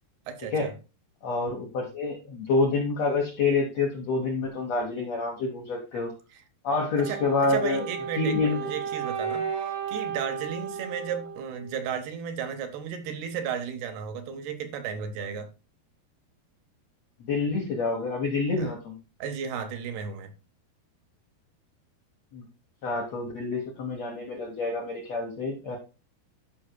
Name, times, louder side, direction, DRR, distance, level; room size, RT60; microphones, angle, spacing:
voice 1, 0.3-0.7 7.0-9.5 9.9-15.5 18.6-18.7 19.2-20.3, right 7 dB, 75° right, 2.9 m, -34 dB
voice 2, 1.2-6.1 6.6-7.8 8.2-8.7 17.2-19.0 22.3-22.4 22.8-25.8, left 3 dB, 70° left, 1.6 m, -27 dB
Wind instrument woodwind instrument, 7.0-12.0, right 6 dB, 55° right, 1.8 m, -34 dB
13.5 x 5.6 x 2.2 m
omnidirectional pair, 4.7 m